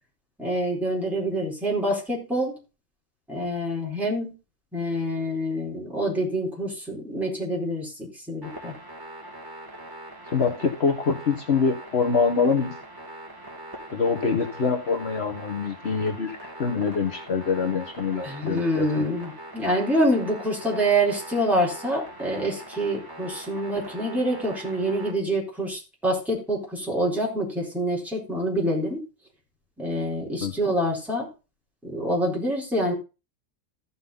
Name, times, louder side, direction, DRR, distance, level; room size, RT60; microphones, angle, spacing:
voice 1, 0.4-2.5 3.3-4.3 4.7-8.7 18.2-29.0 29.8-31.3 31.8-32.9, right 1 dB, ahead, -4 dB, 4.1 m, -26 dB
sound 1, 8.4-25.1, right 1 dB, 15° right, 2.4 m, -42 dB
voice 2, 10.3-12.7 13.9-19.1 30.4-30.5, left 5 dB, 55° left, 4 dB, 1.5 m, -25 dB
14.5 x 5.7 x 4.0 m, 0.30 s
omnidirectional pair, 1.3 m